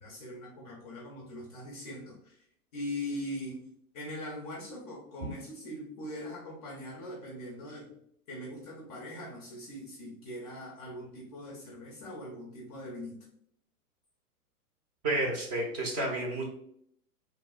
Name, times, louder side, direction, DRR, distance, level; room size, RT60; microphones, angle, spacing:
voice 1, 0.0-2.4 2.7-3.7 3.9-7.9 8.3-13.2, left 1 dB, 30° left, -2 dB, 0.4 m, -41 dB
voice 2, 15.0-16.5, right 2 dB, 25° right, 0 dB, 0.5 m, -30 dB
2.9 x 2.2 x 2.2 m, 0.68 s
figure-of-eight pair, 110°, 45 cm